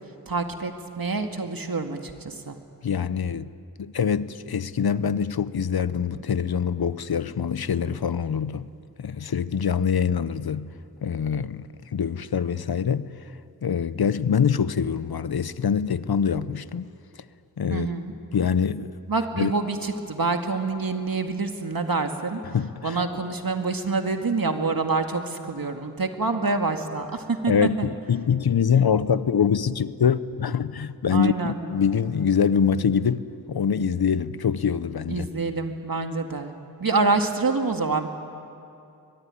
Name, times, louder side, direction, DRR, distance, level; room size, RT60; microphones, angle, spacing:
voice 1, 0.3-2.6 17.7-18.1 19.1-22.4 22.8-27.9 31.1-31.6 35.1-36.5 36.8-38.1, right 3 dB, 70° right, 2.0 m, -26 dB
voice 2, 2.8-3.5 3.8-8.7 9.0-10.7 11.0-13.1 13.6-16.9 17.6-17.9 18.3-19.0 19.4-19.5 22.5-23.0 27.5-33.2 33.5-35.2, left 7 dB, 80° left, 0.8 m, -24 dB
23.0 x 21.5 x 10.0 m
cardioid pair, 40°, 37 cm